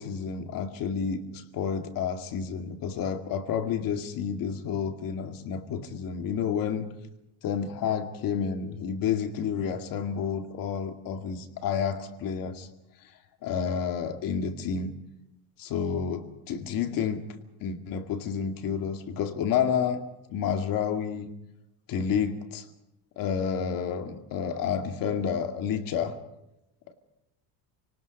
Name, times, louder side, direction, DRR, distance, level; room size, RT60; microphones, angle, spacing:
voice 1, 0.0-6.9 7.4-12.7 13.4-14.9 15.6-17.2 17.6-20.0 20.3-21.3 21.9-22.6 23.2-26.2, left 7 dB, 55° left, 6 dB, 2.3 m, -30 dB
30.0 x 19.0 x 5.3 m, 0.89 s
cardioid pair, 140°, 41 cm